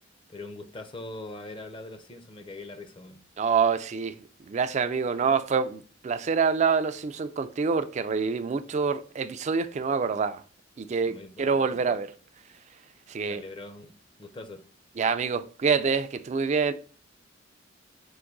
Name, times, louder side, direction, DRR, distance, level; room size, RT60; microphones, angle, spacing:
voice 1, 0.3-3.2 11.1-11.9 13.3-13.9 14.2-14.7, left 2 dB, 25° left, 0.5 m, -42 dB
voice 2, 3.4-4.1 4.5-10.4 10.8-12.1 13.1-13.4 15.0-16.7, right 5 dB, 35° right, 0.3 m, -26 dB
4.8 x 2.6 x 3.8 m
head